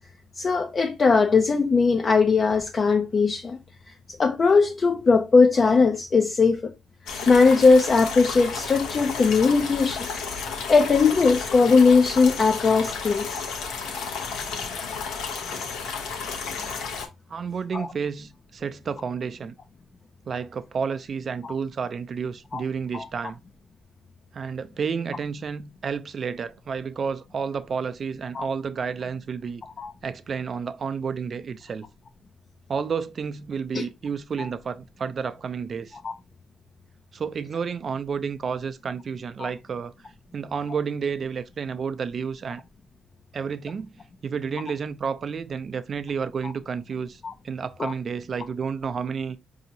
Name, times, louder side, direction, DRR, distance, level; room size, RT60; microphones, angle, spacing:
voice 1, 0.4-3.6 4.2-6.7 7.3-10.1 10.7-13.4 17.7-17.9 21.4-21.5 22.5-22.6 22.9-23.1 28.3-28.5 29.8-29.9 33.7-33.8 34.4-34.5 36.0-36.1 39.4-39.5 46.4-46.5 47.8-47.9, left 4 dB, 40° left, 0.4 m, -19 dB
sound 1, 7.1-17.1, left 5 dB, 85° left, 0.8 m, -32 dB
voice 2, 17.3-19.5 20.3-23.4 24.3-29.6 30.0-31.9 32.7-36.0 37.1-39.9 40.3-42.6 43.3-43.9 44.2-49.4, right 6 dB, 45° right, 0.4 m, -31 dB
4.7 x 2.7 x 2.7 m
cardioid pair, 90°, 0 cm